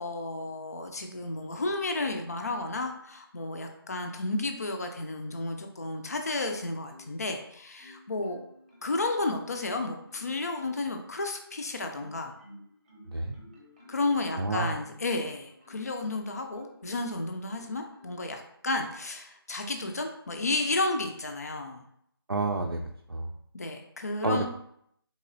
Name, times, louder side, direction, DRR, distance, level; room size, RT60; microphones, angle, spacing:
voice 1, 0.0-8.4 8.8-12.4 13.9-21.8 23.5-24.5, left 2 dB, 40° left, 4 dB, 0.5 m, -32 dB
Marimba xylophone, 6.4-7.4 7.8-9.6 10.1-11.0 11.5-17.0 17.5-18.3 18.9-19.1, left 1 dB, 20° right, 0.8 m, -55 dB
voice 2, 13.1-13.4 14.4-14.7 22.3-22.8 23.1-23.3 24.2-24.5, right 2 dB, 75° right, 2 dB, 0.5 m, -29 dB
4.2 x 3.5 x 2.5 m, 0.71 s
figure-of-eight pair, 160°, 13 cm